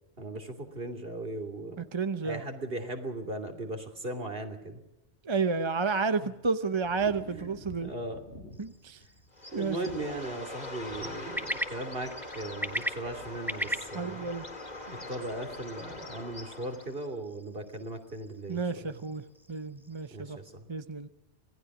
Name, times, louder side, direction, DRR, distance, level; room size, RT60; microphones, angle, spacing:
voice 1, 0.2-1.8 2.2-4.8 6.2-6.3 7.3-7.5 7.8-8.2 9.5-14.3 14.9-19.0 20.1-20.6, right 1 dB, 55° right, 5 dB, 3.1 m, -38 dB
voice 2, 1.8-2.4 5.2-7.9 8.6-9.0 9.5-9.8 13.9-14.4 18.5-19.2 19.5-20.4 20.7-21.1, right 4 dB, 30° right, 10 dB, 0.8 m, -31 dB
sound 1, 6.8-11.8 12.0-12.7 13.0-13.8 14.0-14.4, equal, 70° left, 4.9 m, -51 dB
sound 2, 8.5-20.2, equal, ahead, 1.4 m, -41 dB
Bird, 9.3-17.1, left 2 dB, 40° left, 2.6 m, -42 dB
26.5 x 18.5 x 6.1 m, 0.91 s
omnidirectional pair, 1.1 m